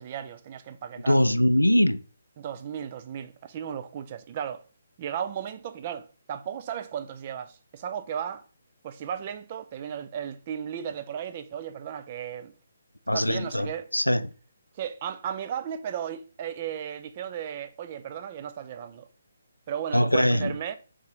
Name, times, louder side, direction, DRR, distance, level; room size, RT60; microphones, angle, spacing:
voice 1, 0.0-1.2 2.4-4.6 5.0-8.4 8.8-12.5 13.1-13.9 14.7-19.1 19.7-20.8, right 9 dB, 30° right, 0.4 m, -35 dB
voice 2, 1.1-2.0 13.1-13.7 13.9-14.3 19.9-20.5, equal, 85° left, 0.3 m, -22 dB
3.7 x 2.8 x 4.6 m
figure-of-eight pair, 140°, 0 cm